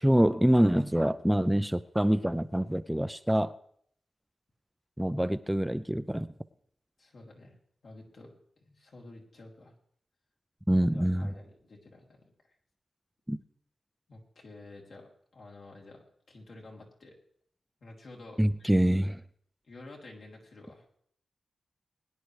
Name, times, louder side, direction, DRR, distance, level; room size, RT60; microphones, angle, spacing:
voice 1, 0.0-3.5 5.0-6.3 10.7-11.3 13.3-13.4 18.4-19.2, equal, 5° right, 0.4 m, -25 dB
voice 2, 7.0-7.5 7.8-8.3 8.6-9.7 10.8-12.3 14.1-17.2 17.8-18.7 19.7-20.8, left 2 dB, 70° left, 3.0 m, -50 dB
21.5 x 10.0 x 3.2 m
wide cardioid pair, 85°, 0 cm